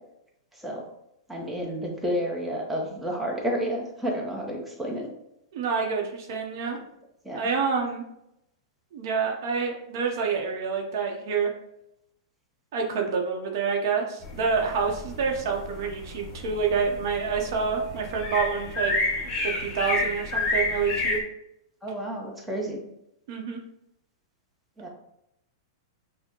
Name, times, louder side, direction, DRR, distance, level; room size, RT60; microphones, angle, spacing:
voice 1, 0.5-0.8 1.3-5.1 7.2-7.4 21.8-22.8 24.8-24.9, equal, 5° right, -1 dB, 0.8 m, -30 dB
voice 2, 5.5-6.8 7.3-8.0 8.9-11.5 12.7-18.9 19.2-21.2 23.3-23.6, right 5 dB, 60° right, 2 dB, 0.7 m, -27 dB
sound 1, 14.2-21.2, left 2 dB, 30° left, 1.0 m, -30 dB
5.9 x 2.1 x 2.9 m, 0.82 s
hypercardioid pair, 125°, 2 cm